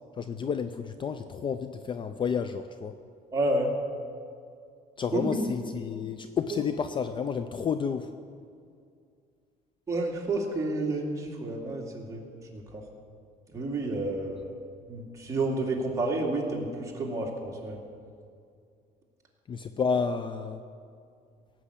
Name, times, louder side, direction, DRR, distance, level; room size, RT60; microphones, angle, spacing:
voice 1, 0.2-3.0 5.0-8.1 19.5-20.6, left 6 dB, 30° left, 9 dB, 0.5 m, -30 dB
voice 2, 3.3-3.7 5.1-5.5 9.9-12.2 12.5-12.8 13.5-14.5 14.9-17.8, right 2 dB, 20° right, -2 dB, 2.5 m, -30 dB
17.5 x 6.2 x 8.4 m, 2.3 s
cardioid pair, 130°, 16 cm